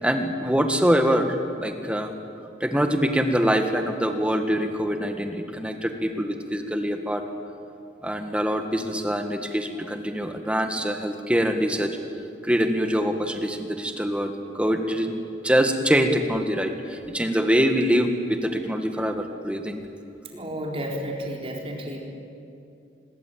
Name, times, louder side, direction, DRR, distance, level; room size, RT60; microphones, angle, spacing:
voice 1, 0.0-2.1 2.6-7.2 8.0-12.0 12.4-19.8, equal, 5° right, 5 dB, 1.8 m, -24 dB
voice 2, 20.3-22.0, equal, 30° right, 0 dB, 4.3 m, -32 dB
25.5 x 22.0 x 8.8 m, 2.7 s
head